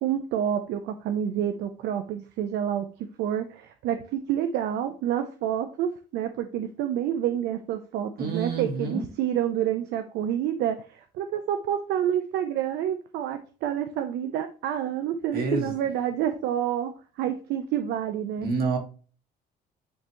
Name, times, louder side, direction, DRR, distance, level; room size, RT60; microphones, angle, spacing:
voice 1, 0.0-18.5, right 10 dB, 80° right, 0.6 m, -28 dB
voice 2, 8.2-9.0 15.3-15.7 18.4-18.8, right 3 dB, 65° right, 2.5 m, -28 dB
9.2 x 3.4 x 3.0 m
cardioid pair, 110°, 17 cm